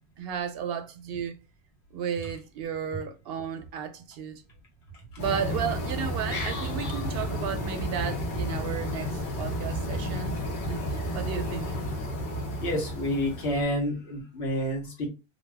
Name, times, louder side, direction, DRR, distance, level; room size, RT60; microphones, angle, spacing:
voice 1, 0.2-1.3 1.9-4.4 5.2-10.4 10.7-11.8, right 7 dB, 70° right, 0.8 m, -34 dB
sound 1, 5.2-13.6, equal, 55° left, 0.9 m, -32 dB
voice 2, 12.6-15.1, equal, 85° left, 1.3 m, -29 dB
2.7 x 2.3 x 3.3 m
omnidirectional pair, 1.1 m